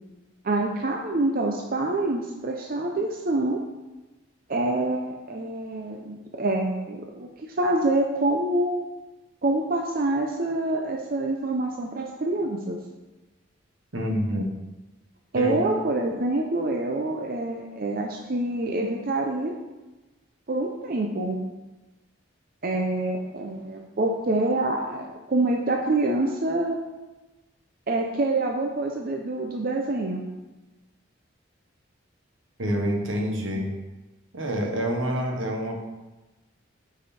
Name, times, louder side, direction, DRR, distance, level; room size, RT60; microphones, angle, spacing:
voice 1, 0.4-3.6 4.5-8.9 9.4-12.8 15.3-19.6 20.5-21.4 22.6-26.8 27.9-30.3, right 2 dB, 50° right, 1 dB, 0.7 m, -26 dB
voice 2, 13.9-14.4 15.3-15.6 32.6-33.8 34.3-35.8, equal, 80° right, 1 dB, 1.4 m, -27 dB
9.0 x 4.9 x 4.3 m, 1.1 s
head